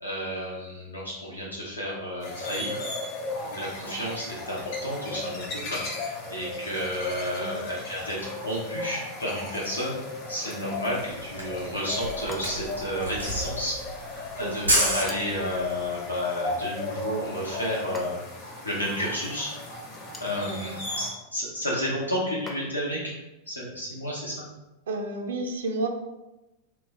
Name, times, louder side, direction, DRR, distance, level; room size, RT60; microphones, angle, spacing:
voice 1, 0.0-2.9 3.4-9.9 10.3-13.8 14.1-18.2 18.6-19.5 20.2-23.1 23.5-24.4, equal, 80° left, -4 dB, 0.7 m, -31 dB
sound 1, 2.2-21.1, left 2 dB, 45° left, 0.7 m, -36 dB
voice 2, 7.4-7.7 14.4-15.0 20.5-20.6 24.9-25.9, right 2 dB, 65° right, 3 dB, 0.4 m, -32 dB
sound 2, 10.4-10.8 12.3-12.8 15.0-15.5 17.9-18.5 19.9-20.4 22.5-23.0, left 1 dB, 15° left, 0.4 m, -44 dB
Camera, 10.9-11.0 11.2-15.7, right 1 dB, 85° right, 0.8 m, -28 dB
3.1 x 2.0 x 3.5 m, 1.0 s
figure-of-eight pair, 90°, 0 cm